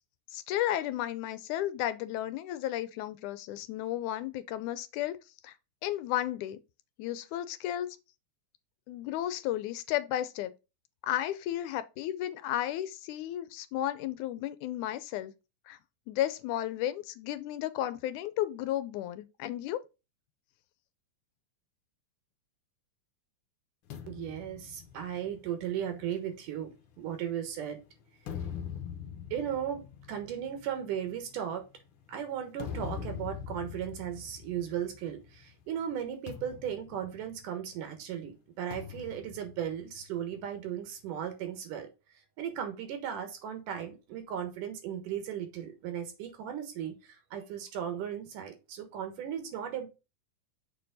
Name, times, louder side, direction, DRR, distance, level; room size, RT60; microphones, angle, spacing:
voice 1, 0.3-5.2 5.4-5.5 5.8-6.6 7.0-7.9 8.9-10.5 11.0-15.3 15.7-15.8 16.1-19.8, left 13 dB, 80° left, 1.9 m, -33 dB
sound 1, 23.9-27.5 28.0-35.4 35.7-35.9 36.3-37.9 38.7-40.5, left 7 dB, 65° left, 1.4 m, -43 dB
voice 2, 24.1-27.8 29.3-31.6 32.1-41.9 42.4-49.9, right 9 dB, 80° right, 3.0 m, -36 dB
6.8 x 4.6 x 3.9 m
omnidirectional pair, 3.7 m